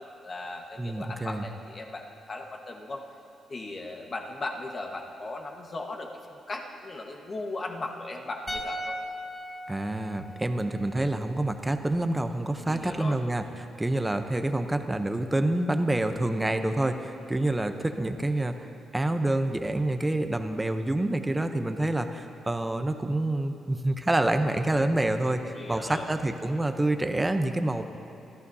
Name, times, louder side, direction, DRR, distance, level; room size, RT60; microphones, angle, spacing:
voice 1, 0.0-3.0 3.5-9.0 12.7-13.2 25.5-26.1, left 2 dB, 30° left, 2 dB, 1.4 m, -37 dB
voice 2, 0.8-1.4 9.7-18.7 18.9-27.8, right 1 dB, 10° right, 7 dB, 0.7 m, -27 dB
sound 1, 8.5-11.7 11.9-12.1, equal, 10° left, 1.3 m, -39 dB
27.0 x 14.0 x 2.8 m, 2.9 s
cardioid pair, 145°, 0 cm